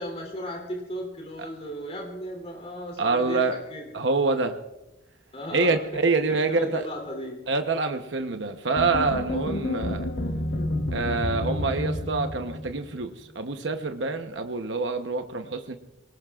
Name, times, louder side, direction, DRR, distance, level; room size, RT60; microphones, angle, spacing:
voice 1, 0.0-3.9 5.3-7.4, equal, 35° left, 0 dB, 3.1 m, -36 dB
voice 2, 3.0-3.5 3.9-4.6 5.5-6.8 7.5-10.1 10.9-15.7, right 3 dB, 70° right, 6 dB, 0.9 m, -26 dB
sound 1, 8.8-13.0, left 1 dB, 65° left, 1.2 m, -29 dB
26.0 x 19.0 x 2.4 m, 1.0 s
head